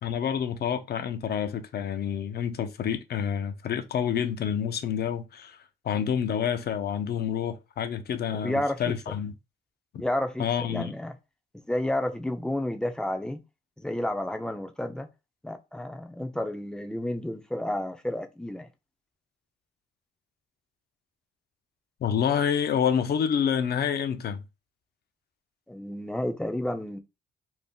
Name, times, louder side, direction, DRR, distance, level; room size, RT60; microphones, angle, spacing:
voice 1, 0.0-5.6 5.8-9.3 10.4-10.9 22.0-24.4, left 8 dB, 55° left, 0.5 m, -28 dB
voice 2, 8.3-9.2 10.0-11.2 11.7-13.4 13.8-15.1 15.4-18.7 25.7-27.0, left 1 dB, 5° left, 0.4 m, -31 dB
2.6 x 2.0 x 3.5 m
cardioid pair, 90°, 20 cm